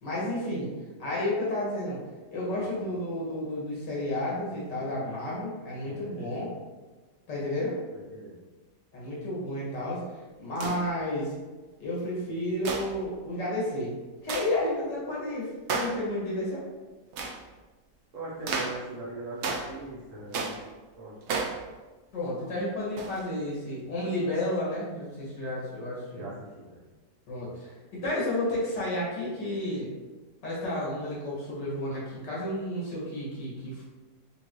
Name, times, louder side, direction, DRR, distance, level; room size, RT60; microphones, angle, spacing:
voice 1, 0.0-0.7 1.0-2.0 2.3-6.5 7.3-7.8 8.9-10.0 10.4-11.3 11.8-14.0 14.2-16.6 22.1-26.3 27.3-27.7 28.0-29.9 30.4-33.8, left 1 dB, 75° left, -6 dB, 2.1 m, -31 dB
voice 2, 4.5-4.9 5.8-6.6 7.9-8.4 18.1-20.5 21.0-21.2 26.1-26.8, right 2 dB, 55° right, -5 dB, 1.0 m, -41 dB
sound 1, 10.6-10.9 12.6-13.0 14.3-14.5 15.7-16.0 17.1-17.4 18.5-18.8 19.4-19.8 20.3-20.7 21.3-21.6 23.0-23.2, right 4 dB, 75° right, 0.6 m, -32 dB
5.1 x 2.5 x 3.0 m, 1.2 s
omnidirectional pair, 1.9 m